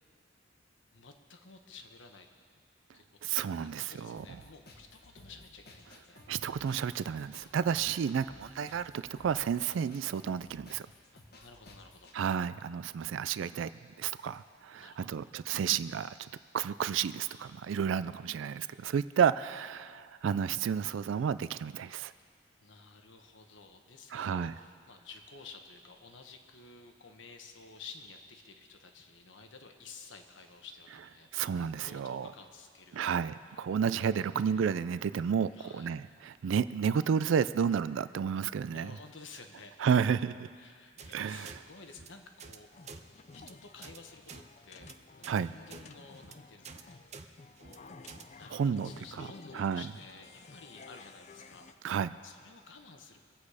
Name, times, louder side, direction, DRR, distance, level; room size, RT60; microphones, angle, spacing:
voice 1, 0.9-2.3 2.9-6.2 11.1-12.2 14.7-15.2 22.2-22.3 22.6-33.0 35.5-35.9 38.7-39.7 40.6-42.7 43.3-48.1 48.3-51.7 52.2-53.2, left 4 dB, 70° left, 5 dB, 1.2 m, -52 dB
voice 2, 3.2-4.2 6.3-10.9 12.1-13.7 14.0-16.3 16.5-22.1 24.1-24.5 31.3-32.3 32.9-38.9 39.8-40.5 41.1-41.5 45.3-45.5 48.5-48.9 49.2-49.3 49.5-49.8 51.8-52.1, right 7 dB, 75° right, 15 dB, 0.3 m, -31 dB
sound 1, 4.2-12.2, left 2 dB, 50° left, 1.3 m, -56 dB
filtered hatsnare, 41.0-41.1 41.4-41.6 41.9-42.1 42.4-42.6 42.8-43.0 43.3-43.5 43.8-44.0 44.3-44.4 44.7-44.9 45.2-45.4 45.7-45.8 46.1-46.3 46.6-46.8 47.1-47.3 47.6-47.8 48.1-48.2, right 5 dB, 35° right, 0.6 m, -48 dB
sound 2, 42.7-51.7, left 4 dB, 35° left, 0.5 m, -53 dB
23.5 x 8.4 x 4.9 m, 2.1 s
head